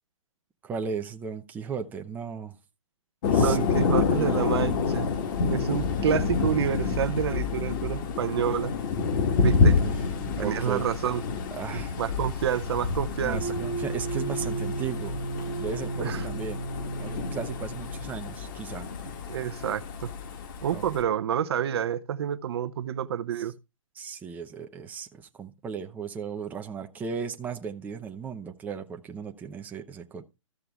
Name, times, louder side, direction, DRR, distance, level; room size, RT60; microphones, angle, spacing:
voice 1, 0.6-2.5 3.3-3.6 4.1-4.5 9.6-10.0 10.4-10.8 11.5-11.9 13.2-15.2 15.6-16.6 17.0-18.9 20.7-20.8 23.4-23.5 23.9-30.2, right 6 dB, 10° right, 0.7 m, -36 dB
Thunder, 3.2-21.0, left 5 dB, 40° left, 1.6 m, -28 dB
voice 2, 3.4-5.1 5.5-8.7 9.4-9.8 10.4-11.2 12.0-13.4 16.0-16.2 19.3-20.1 20.6-23.5, right 9 dB, 50° right, 0.8 m, -28 dB
sound 1, 13.4-18.6, right 3 dB, 90° left, 5.6 m, -34 dB
14.0 x 6.8 x 3.4 m
figure-of-eight pair, 130°, 17 cm